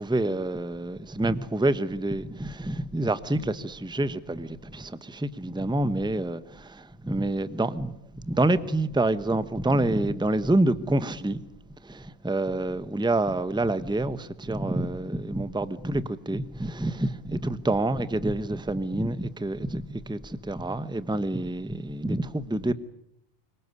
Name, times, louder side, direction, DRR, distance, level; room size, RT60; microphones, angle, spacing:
voice 1, 0.0-11.4 11.8-22.7, right 2 dB, 5° right, 0.9 m, -27 dB
25.5 x 23.0 x 9.6 m
omnidirectional pair, 1.2 m